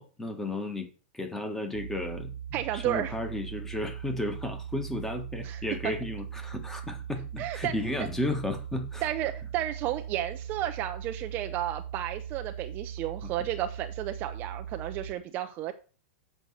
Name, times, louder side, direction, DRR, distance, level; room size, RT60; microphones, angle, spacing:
voice 1, 0.0-9.1, left 1 dB, 5° left, 6 dB, 1.6 m, -34 dB
sound 1, 1.7-15.1, right 9 dB, 50° right, 1.3 m, -40 dB
voice 2, 2.5-3.1 5.4-5.9 7.4-7.7 9.0-15.7, right 12 dB, 30° right, 7 dB, 0.6 m, -32 dB
8.0 x 5.5 x 6.4 m, 0.36 s
supercardioid pair, 155°, 6 cm